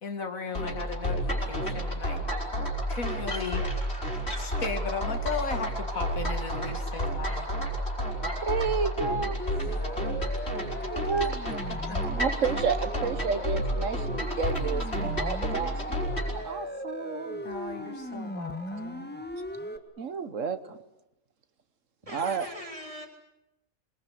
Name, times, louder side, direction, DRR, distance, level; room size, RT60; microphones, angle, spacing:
voice 1, 0.0-2.2 2.9-3.7 4.4-7.5 11.4-11.5 11.9-12.0 17.4-19.1, left 4 dB, 85° left, 6 dB, 2.6 m, -36 dB
sound 1, 0.5-16.4, equal, 50° left, 5.2 m, -31 dB
voice 2, 8.4-9.4 10.9-11.3 12.2-16.0 16.4-17.4 20.0-20.8 22.1-22.5, right 5 dB, 70° right, 11 dB, 1.5 m, -31 dB
Siren, 9.4-19.8, left 1 dB, 10° left, 1.6 m, -38 dB
voice 3, 22.0-23.1, equal, 25° right, 3 dB, 3.8 m, -41 dB
26.5 x 21.5 x 8.4 m, 0.91 s
omnidirectional pair, 1.4 m